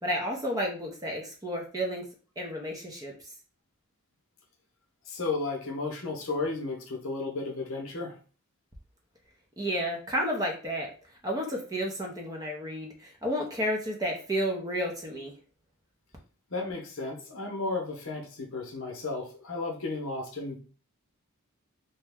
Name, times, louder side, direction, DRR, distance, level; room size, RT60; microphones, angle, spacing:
voice 1, 0.0-2.0 2.4-3.1 9.6-10.9 11.2-15.3, equal, 15° right, 0 dB, 0.6 m, -31 dB
voice 2, 5.1-8.2 16.5-20.6, left 3 dB, 60° left, 1 dB, 0.7 m, -33 dB
2.9 x 2.2 x 3.4 m, 0.38 s
head